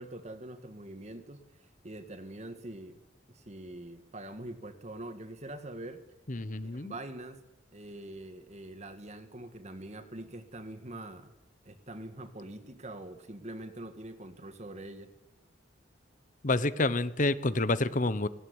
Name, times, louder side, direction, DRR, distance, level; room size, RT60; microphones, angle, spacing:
voice 1, 0.0-1.4 1.8-3.0 3.3-6.0 6.6-7.4 7.7-11.3 11.6-15.1, right 1 dB, 35° right, 8 dB, 1.9 m, -44 dB
voice 2, 6.3-6.9 16.4-18.3, left 2 dB, 45° left, 15 dB, 1.0 m, -28 dB
18.5 x 18.0 x 9.7 m, 0.92 s
head